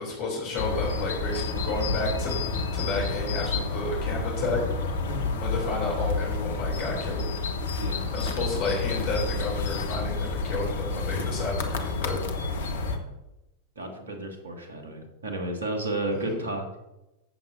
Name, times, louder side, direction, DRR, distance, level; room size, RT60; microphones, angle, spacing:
voice 1, 0.0-2.4 2.7-4.6 5.4-7.3 8.1-12.2 16.1-16.3, left 3 dB, 45° left, -1 dB, 3.0 m, -31 dB
sound 1, 0.6-13.0, left 3 dB, 60° left, 1.1 m, -29 dB
voice 2, 5.1-5.4 7.8-8.1 12.9-13.1 13.8-16.7, right 1 dB, 70° right, 4 dB, 1.9 m, -33 dB
15.0 x 7.3 x 2.7 m, 0.94 s
figure-of-eight pair, 90°, 0 cm